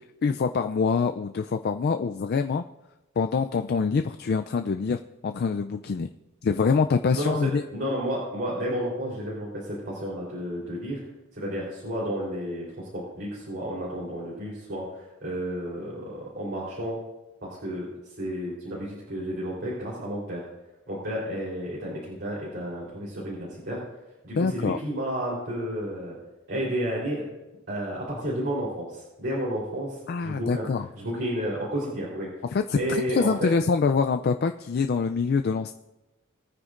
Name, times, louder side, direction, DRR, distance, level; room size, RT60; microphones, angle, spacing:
voice 1, 0.2-2.6 3.2-6.1 6.4-7.6 24.3-24.8 30.1-30.9 32.5-35.7, left 5 dB, 50° left, 7 dB, 0.4 m, -25 dB
voice 2, 7.1-11.0 11.3-17.0 17.4-20.5 20.9-23.8 24.2-26.2 26.5-27.3 27.7-30.7 30.9-32.3 32.7-33.5, equal, 55° right, -6 dB, 3.6 m, -31 dB
20.5 x 9.5 x 2.5 m, 1.1 s
head